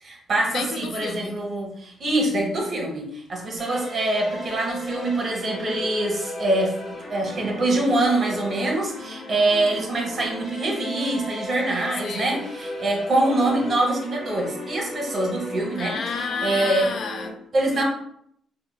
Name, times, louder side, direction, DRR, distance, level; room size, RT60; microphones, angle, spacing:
voice 1, 0.0-6.8 7.1-15.9 16.4-16.9 17.5-17.8, right 2 dB, 45° right, 0 dB, 1.0 m, -24 dB
voice 2, 0.5-1.3 12.0-12.5 15.8-17.4 17.7-17.8, left 5 dB, 60° left, 5 dB, 0.4 m, -31 dB
sound 1, 3.6-17.3, left 1 dB, 40° left, 1.2 m, -36 dB
3.6 x 2.2 x 2.2 m, 0.69 s
cardioid pair, 90°, 0 cm